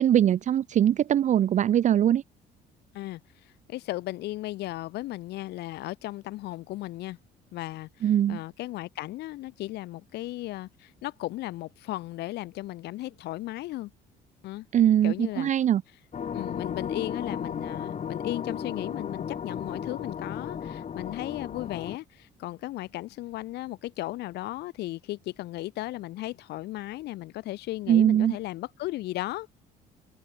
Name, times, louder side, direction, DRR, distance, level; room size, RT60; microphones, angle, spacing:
voice 1, 0.0-2.2 8.0-8.4 14.7-15.8 27.9-28.4, right 10 dB, 45° right, 0.6 m, -21 dB
voice 2, 2.9-7.2 7.5-13.9 14.4-14.7 15.0-15.5 16.3-29.5, left 17 dB, 80° left, 2.0 m, -36 dB
sound 1, 16.1-22.0, left 7 dB, 45° left, 7.6 m, -35 dB
cardioid pair, 110°, 17 cm